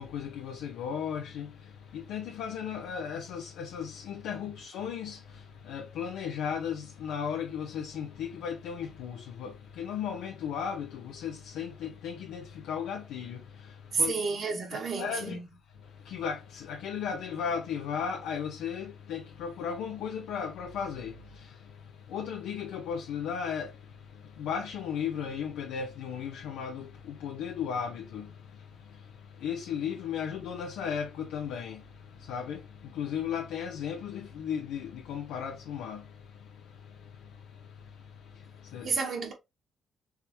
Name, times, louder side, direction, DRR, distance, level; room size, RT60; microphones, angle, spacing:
voice 1, 0.0-14.1 14.7-15.4 15.7-39.0, left 7 dB, 90° left, 0.8 m, -36 dB
voice 2, 13.9-15.4 38.8-39.3, right 4 dB, 55° right, 1.9 m, -30 dB
4.6 x 3.5 x 2.8 m
cardioid pair, 90°, 0 cm